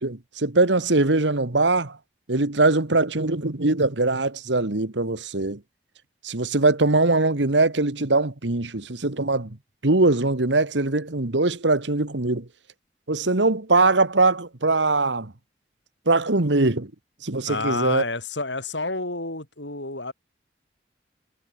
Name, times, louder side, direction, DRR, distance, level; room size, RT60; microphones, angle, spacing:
voice 1, 0.0-2.0 2.3-5.6 6.2-9.6 9.8-12.5 13.1-15.3 16.1-16.9 17.2-18.0, right 2 dB, 80° right, 1.7 m, -22 dB
voice 2, 17.5-20.1, left 3 dB, 80° left, 6.8 m, -29 dB
head